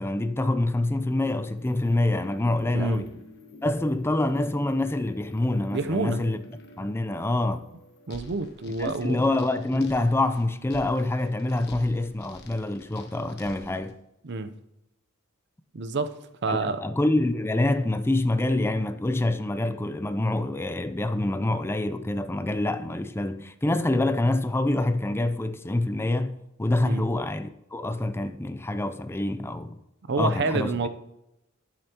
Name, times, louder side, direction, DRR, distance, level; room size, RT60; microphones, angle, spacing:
voice 1, 0.0-3.1 3.6-6.4 6.8-7.6 8.8-13.9 16.5-29.8 30.2-30.7, left 2 dB, 10° left, 0.4 m, -26 dB
sound 1, 0.9-13.9, left 1 dB, 50° left, 1.3 m, -49 dB
voice 2, 2.7-3.0 5.7-6.2 8.1-9.2 14.2-14.5 15.7-16.1 16.4-16.8 26.8-27.1 30.1-30.9, right 3 dB, 55° right, 0.6 m, -28 dB
10.5 x 8.6 x 2.9 m
head